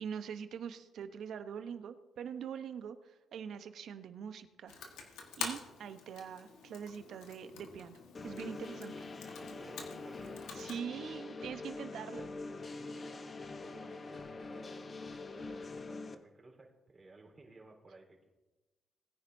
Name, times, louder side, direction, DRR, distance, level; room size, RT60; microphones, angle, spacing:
voice 1, 0.0-4.8 5.1-8.9 10.6-12.3, right 7 dB, 70° right, 9 dB, 0.9 m, -43 dB
Computer keyboard, 4.7-10.8, left 6 dB, 90° left, 1.5 m, -46 dB
sound 1, 8.1-16.1, left 3 dB, 35° left, 0.9 m, -44 dB
voice 2, 9.4-10.5 12.6-14.8 15.2-18.3, right 2 dB, 25° right, -2 dB, 3.9 m, -57 dB
20.0 x 9.9 x 2.7 m, 1.1 s
cardioid pair, 90°, 0 cm